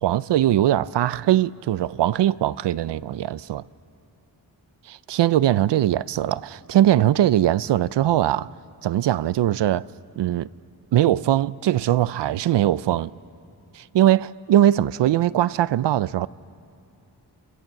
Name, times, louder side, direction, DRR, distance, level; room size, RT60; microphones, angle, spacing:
voice 1, 0.0-3.6 4.9-8.5 8.8-9.9 10.2-10.5 10.9-13.1 13.7-16.3, right 12 dB, 75° right, 0.6 m, -21 dB
30.0 x 24.0 x 7.4 m
cardioid pair, 80°, 42 cm